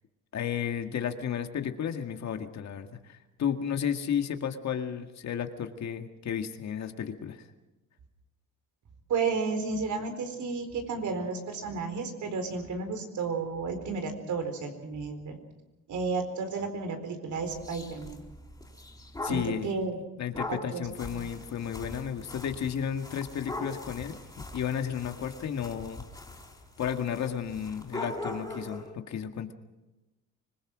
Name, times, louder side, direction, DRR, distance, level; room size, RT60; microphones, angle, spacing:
voice 1, 0.3-7.5 19.2-19.7 20.2-26.0 26.8-29.5, left 8 dB, 60° left, 6 dB, 1.9 m, -33 dB
voice 2, 9.1-15.4 15.9-18.2 19.2-20.0 20.5-20.8, right 4 dB, 70° right, 7 dB, 4.4 m, -32 dB
sound 1, 17.5-19.6 20.3-28.9, left 1 dB, 10° left, 4.4 m, -41 dB
25.5 x 21.0 x 6.2 m, 1.1 s
cardioid pair, 120°, 31 cm